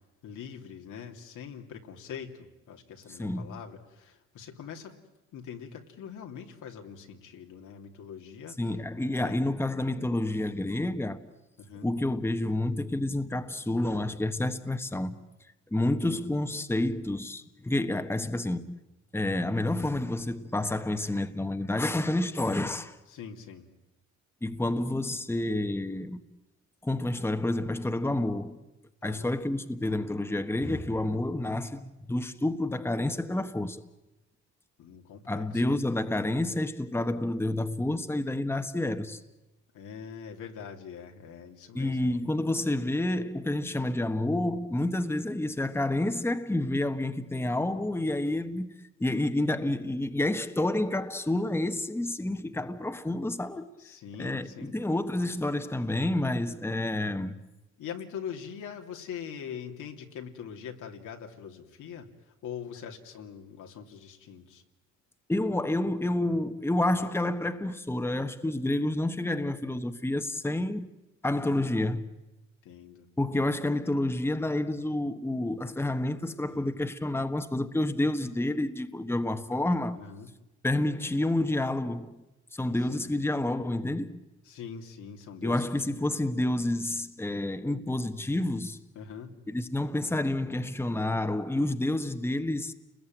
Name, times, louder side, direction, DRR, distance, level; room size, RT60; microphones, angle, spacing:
voice 1, 0.2-5.0 5.3-8.6 9.2-9.4 11.6-11.9 16.2-16.3 23.1-23.7 29.0-29.4 34.8-35.8 39.7-42.2 53.8-54.7 57.8-64.6 71.4-71.9 72.6-73.1 76.5-76.7 80.0-80.3 82.9-83.1 84.4-86.1 88.9-89.4, left 7 dB, 80° left, 2.8 m, -43 dB
voice 2, 3.2-3.5 8.6-11.3 11.8-15.1 15.7-18.7 19.1-23.0 24.4-26.2 26.8-28.6 29.0-33.8 35.3-39.2 41.7-48.7 49.0-53.7 54.2-57.4 65.3-70.9 71.2-72.1 73.2-80.0 80.6-82.2 82.5-84.2 85.4-88.8 89.5-92.7, left 1 dB, 10° left, 1.3 m, -29 dB
29.5 x 21.0 x 9.2 m
cardioid pair, 90°, 30 cm